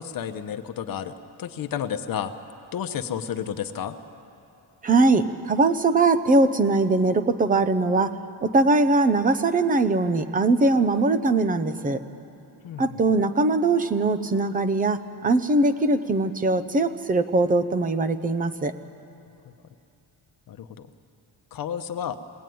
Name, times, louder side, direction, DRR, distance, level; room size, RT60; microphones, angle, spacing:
voice 1, 0.0-2.3 2.7-3.9 12.6-13.0 20.5-20.7 21.5-22.2, left 8 dB, 55° left, 8 dB, 0.9 m, -31 dB
voice 2, 4.8-8.2 8.4-12.0 12.8-18.7, right 2 dB, 20° right, 10 dB, 0.7 m, -21 dB
22.5 x 18.0 x 9.3 m, 2.8 s
cardioid pair, 180°, 40 cm